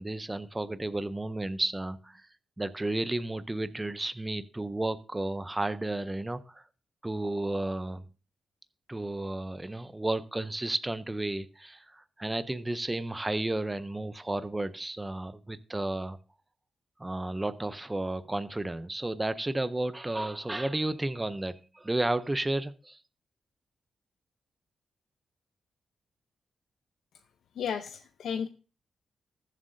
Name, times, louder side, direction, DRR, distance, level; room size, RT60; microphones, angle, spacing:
voice 1, 0.0-2.2 2.6-6.6 7.0-8.1 8.9-16.2 17.0-23.0, right 2 dB, 10° right, 0.5 m, -32 dB
voice 2, 27.6-28.5, left 7 dB, 85° left, 0.6 m, -33 dB
20.5 x 7.5 x 2.6 m
wide cardioid pair, 150°, 0 cm